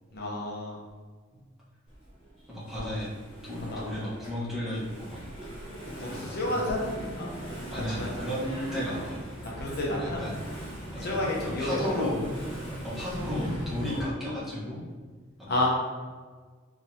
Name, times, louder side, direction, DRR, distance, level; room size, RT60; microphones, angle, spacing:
voice 1, 0.1-0.8 2.7-2.8 3.7-3.8 5.8-7.3 7.7-8.1 9.0-9.1 9.6-10.2 11.0-12.0 13.9-14.0 15.5-15.7, left 1 dB, 50° left, -4 dB, 0.8 m, -31 dB
Engine / Mechanisms, 1.9-14.0, equal, 25° left, 1.3 m, -39 dB
voice 2, 2.5-3.1 3.4-5.2 6.0-6.6 7.7-9.2 9.9-10.4 10.9-11.2 11.6-12.2 12.7-14.8 15.4-15.7, left 1 dB, ahead, -9 dB, 1.2 m, -34 dB
5.1 x 2.7 x 2.7 m, 1.5 s
head